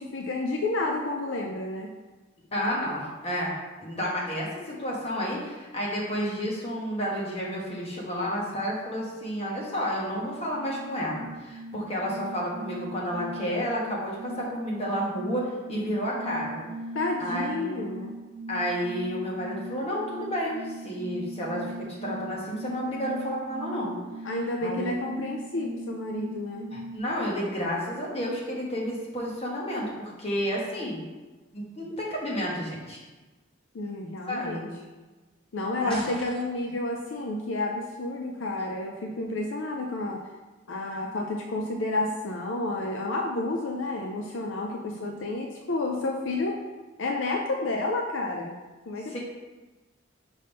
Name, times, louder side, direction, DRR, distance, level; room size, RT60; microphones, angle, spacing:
voice 1, 0.0-1.9 16.9-18.1 24.2-26.7 33.7-34.7 35.5-40.2 40.7-46.6 47.0-48.6 48.9-49.2, left 2 dB, 70° left, 2 dB, 0.5 m, -30 dB
voice 2, 2.5-16.6 17.2-17.8 18.5-23.9 24.6-24.9 26.7-31.0 31.5-33.0 34.3-34.6 35.8-36.0 49.1-49.2, equal, 30° left, -4 dB, 1.4 m, -31 dB
sound 1, 10.2-27.0, right 1 dB, 75° right, 0.4 m, -40 dB
sound 2, 35.9-36.8, right 1 dB, 5° left, 1.1 m, -42 dB
5.3 x 3.5 x 5.4 m, 1.2 s
head